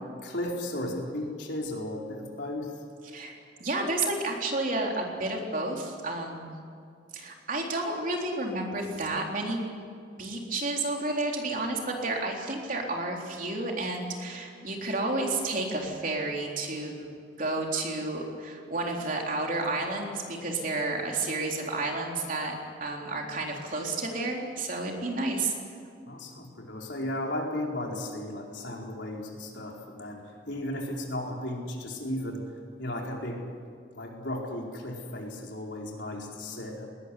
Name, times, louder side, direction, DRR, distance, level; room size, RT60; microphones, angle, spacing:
voice 1, 0.2-2.7 26.1-30.2 30.5-32.4 32.8-33.4 34.0-36.9, left 1 dB, 65° left, -1 dB, 4.6 m, -35 dB
voice 2, 3.0-6.5 7.1-9.7 10.2-17.1 17.4-22.5 22.8-25.5, right 2 dB, 45° right, 0 dB, 3.8 m, -31 dB
20.5 x 19.5 x 9.9 m, 2.3 s
head